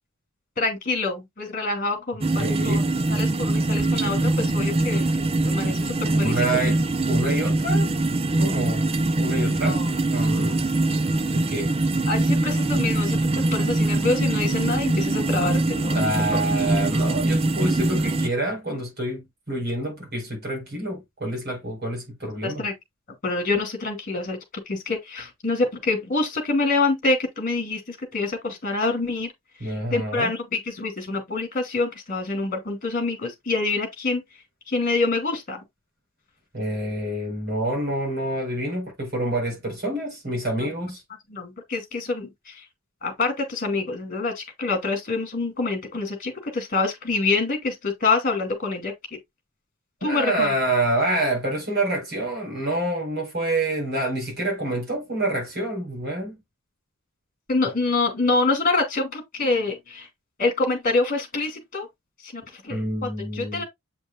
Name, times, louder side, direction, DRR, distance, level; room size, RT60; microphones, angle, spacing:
voice 1, 0.6-2.8 3.1-5.1 5.4-6.3 9.6-9.9 12.1-16.0 22.4-22.7 23.2-24.4 24.7-29.3 29.6-34.2 34.7-35.6 40.6-40.7 41.3-42.6 43.0-49.2 50.0-50.5 57.5-60.1 60.4-61.9 62.2-63.6, left 3 dB, 40° left, 2.6 m, -26 dB
sound 1, 2.2-18.3, right 2 dB, 25° right, 0.5 m, -23 dB
voice 2, 2.4-2.8 6.1-6.8 7.1-7.9 8.4-8.9 9.2-9.8 10.1-10.7 11.3-11.7 15.9-22.6 29.6-30.3 36.5-41.0 50.0-56.4 62.7-63.6, right 1 dB, 50° right, 4.5 m, -27 dB
8.3 x 5.2 x 2.3 m
head